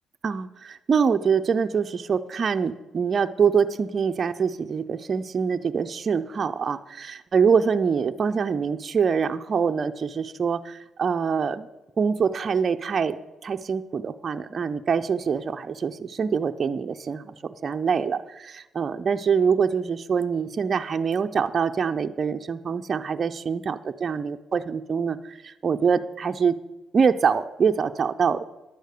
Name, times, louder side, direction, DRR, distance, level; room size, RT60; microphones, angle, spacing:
voice 1, 0.2-11.7 12.0-13.2 13.4-26.6 26.9-28.5, right 6 dB, 45° right, 7 dB, 0.5 m, -24 dB
11.0 x 8.2 x 6.5 m, 1.0 s
cardioid pair, 90°, 0 cm